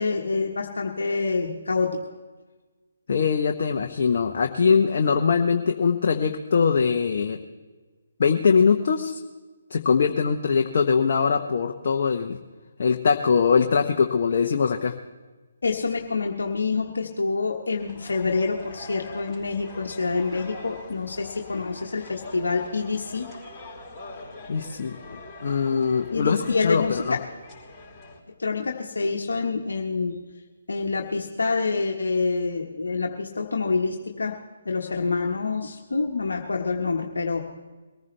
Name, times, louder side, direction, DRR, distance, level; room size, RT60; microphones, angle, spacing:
voice 1, 0.0-2.0 15.6-23.3 26.1-27.2 28.4-30.2 30.7-34.4 34.6-37.4, left 4 dB, 75° left, 1 dB, 1.3 m, -27 dB
voice 2, 3.1-7.4 8.2-9.2 9.7-12.4 12.8-14.9 24.5-27.2, left 5 dB, 50° left, 4 dB, 0.9 m, -22 dB
sound 1, 17.8-28.2, left 2 dB, 5° left, 4.6 m, -43 dB
23.0 x 15.0 x 3.3 m, 1.3 s
figure-of-eight pair, 145°, 0 cm